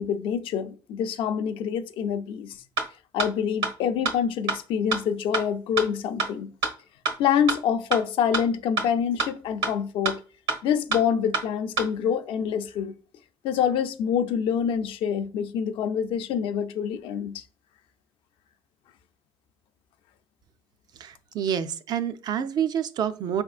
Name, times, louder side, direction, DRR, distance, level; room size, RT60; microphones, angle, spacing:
voice 1, 0.0-2.6 3.1-6.5 7.2-10.2 10.6-12.9 13.4-17.4, left 8 dB, 70° left, 0.5 m, -26 dB
sound 1, 2.8-2.9 3.2-3.3 3.6-3.7 4.1-4.2 4.5-4.6 4.9-5.0 5.3-5.4 5.8-5.9 6.2-6.3 6.6-6.7 7.1-7.2 7.5-7.6 7.9-8.0 8.3-8.4 8.8-8.9 9.2-9.3 9.6-9.7 10.1-10.2 10.5-10.6 10.9-11.0 11.3-11.4 11.8-11.9, right 4 dB, 75° right, 1.3 m, -25 dB
voice 2, 21.0-23.4, right 8 dB, 45° right, 0.4 m, -28 dB
4.9 x 3.5 x 2.4 m
cardioid pair, 150°, 9 cm